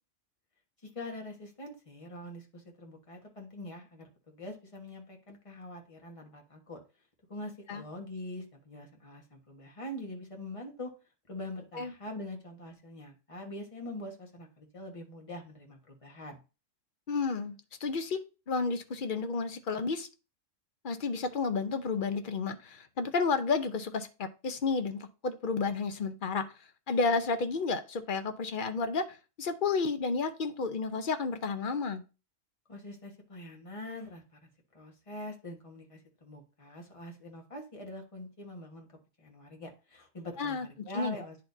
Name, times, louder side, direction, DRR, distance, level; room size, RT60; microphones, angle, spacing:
voice 1, 0.9-6.8 7.3-10.9 11.3-16.4 32.7-34.5 34.7-38.9 39.2-41.4, left 1 dB, 25° left, 1 dB, 1.4 m, -44 dB
voice 2, 17.1-17.6 17.8-18.2 18.5-20.1 20.8-26.5 26.9-32.0 40.4-40.7 40.9-41.2, left 4 dB, 50° left, 8 dB, 0.7 m, -31 dB
10.0 x 4.3 x 2.6 m, 0.32 s
omnidirectional pair, 1.3 m